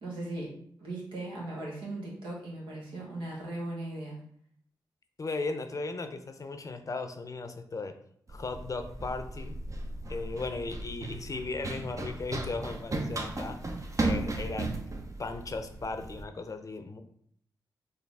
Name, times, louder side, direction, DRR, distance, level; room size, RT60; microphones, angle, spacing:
voice 1, 0.0-0.5 0.8-4.2, right 2 dB, 85° right, -4 dB, 1.3 m, -38 dB
voice 2, 5.2-8.0 8.3-9.6 10.1-13.6 14.0-14.7 15.2-17.0, left 3 dB, 40° left, 8 dB, 0.5 m, -36 dB
Run, 8.3-16.2, right 2 dB, 40° right, 0.7 m, -35 dB
4.0 x 2.6 x 3.4 m, 0.65 s
supercardioid pair, 40°, 8 cm